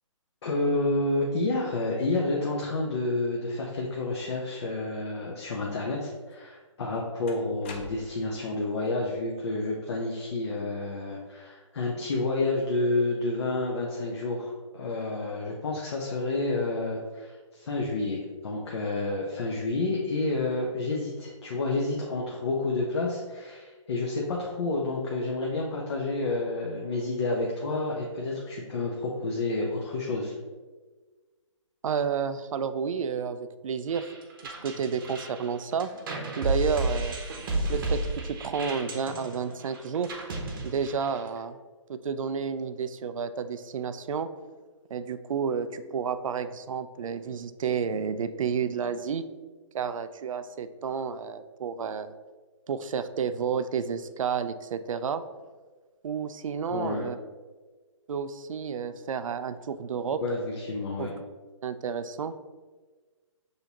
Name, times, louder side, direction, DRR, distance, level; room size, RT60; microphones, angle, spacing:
voice 1, 0.4-30.3 56.7-57.1 60.2-61.1, left 2 dB, 55° left, -2 dB, 0.7 m, -29 dB
sound 1, 6.3-6.4 7.3-8.4, left 4 dB, 20° left, 0.3 m, -44 dB
voice 2, 31.8-34.1 34.4-35.9 36.4-37.2 37.7-40.1 40.6-41.6 41.9-44.3 44.9-49.3 49.7-52.1 52.7-55.2 56.0-57.2 58.1-60.2 61.0-61.1 61.6-62.3, right 6 dB, 80° right, 12 dB, 0.4 m, -31 dB
sound 2, 33.9-41.4, right 2 dB, 40° right, 0.8 m, -32 dB
6.5 x 2.7 x 2.9 m, 1.4 s
hypercardioid pair, 150°, 17 cm